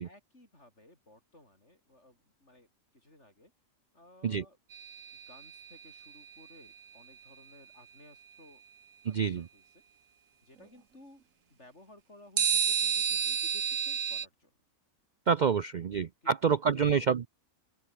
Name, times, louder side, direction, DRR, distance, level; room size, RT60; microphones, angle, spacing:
voice 1, 0.0-3.5 3.9-4.6 5.1-8.6 9.1-9.8 10.4-14.5 15.5-15.9 16.2-16.3 16.7-17.0, left 1 dB, 60° left, 8.4 m, -58 dB
sound 1, 4.7-6.0 12.4-14.3, right 7 dB, 75° right, 1.7 m, -30 dB
voice 2, 9.0-9.5 15.3-17.3, right 6 dB, 50° right, 0.6 m, -27 dB
open air
omnidirectional pair, 1.4 m